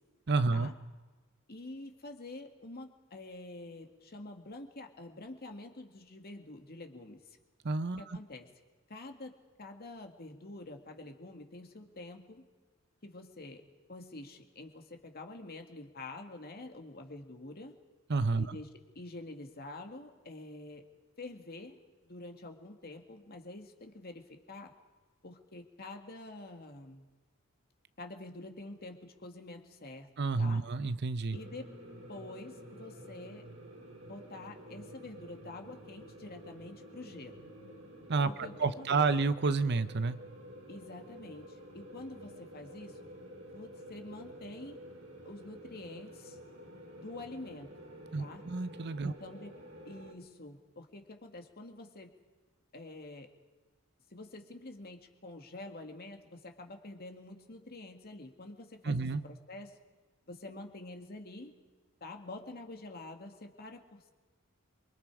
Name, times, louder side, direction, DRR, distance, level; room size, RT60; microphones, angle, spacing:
voice 1, 0.3-0.7 7.6-8.2 18.1-18.6 30.2-31.4 38.1-38.3 38.6-40.2 48.1-49.1 58.8-59.2, right 4 dB, 55° right, 14 dB, 0.7 m, -30 dB
voice 2, 1.5-7.4 8.0-8.5 8.9-9.3 9.6-12.5 13.0-13.6 13.9-17.8 18.4-18.7 19.0-20.8 21.2-21.8 22.0-24.7 25.2-27.1 28.0-30.1 30.4-30.6 31.3-31.7 32.1-33.5 34.1-37.4 38.2-39.1 40.7-43.1 43.5-44.8 45.3-46.4 46.9-47.7 48.2-48.5 49.0-49.5 49.9-52.2 52.7-53.3 54.1-59.8 60.3-61.5 62.0-64.1, left 2 dB, 50° left, 4 dB, 2.2 m, -47 dB
sound 1, 31.3-50.1, equal, 70° right, 5.3 m, -50 dB
28.5 x 24.5 x 4.9 m, 1.3 s
head